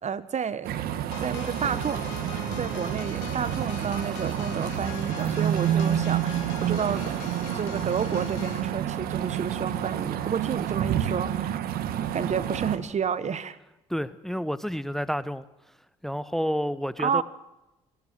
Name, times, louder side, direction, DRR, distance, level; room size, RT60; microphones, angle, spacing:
voice 1, 0.0-0.7 1.2-2.2 2.6-7.0 7.5-11.6 12.1-13.6 17.0-17.2, right 7 dB, 45° right, 1.5 m, -30 dB
sound 1, 0.6-12.8, right 10 dB, 70° right, 1.8 m, -29 dB
sound 2, 1.1-8.7, left 12 dB, 85° left, 1.9 m, -42 dB
voice 2, 13.9-15.4 16.0-17.2, equal, ahead, 1.0 m, -29 dB
24.5 x 16.5 x 7.7 m
hypercardioid pair, 50°, 16 cm